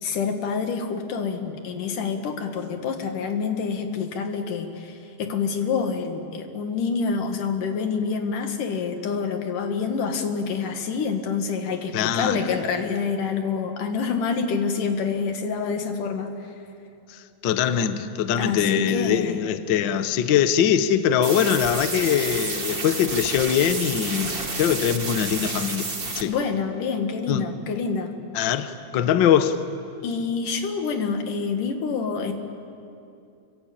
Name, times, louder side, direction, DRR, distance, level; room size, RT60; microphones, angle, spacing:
voice 1, 0.0-16.5 18.4-19.4 26.3-28.1 30.0-32.3, left 5 dB, 85° left, 3.5 m, -27 dB
voice 2, 11.9-12.4 17.1-25.9 26.1-26.3 27.3-27.4 28.3-29.6, left 9 dB, 65° left, 1.1 m, -22 dB
sound 1, 21.2-26.2, right 3 dB, 25° right, 1.4 m, -30 dB
28.5 x 23.5 x 8.8 m
omnidirectional pair, 3.6 m